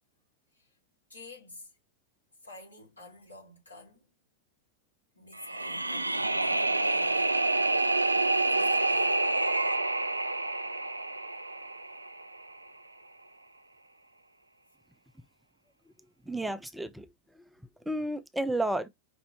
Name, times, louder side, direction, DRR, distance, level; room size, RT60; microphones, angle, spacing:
voice 1, 1.1-1.8 2.4-4.1 5.1-7.5 8.4-9.2, left 2 dB, 85° left, 2.6 m, -50 dB
sound 1, 5.4-12.4, right 2 dB, 85° right, 0.3 m, -28 dB
voice 2, 16.3-17.1 17.3-17.4 17.9-18.9, right 1 dB, 5° right, 0.4 m, -31 dB
5.3 x 3.0 x 3.1 m
figure-of-eight pair, 90°, 0 cm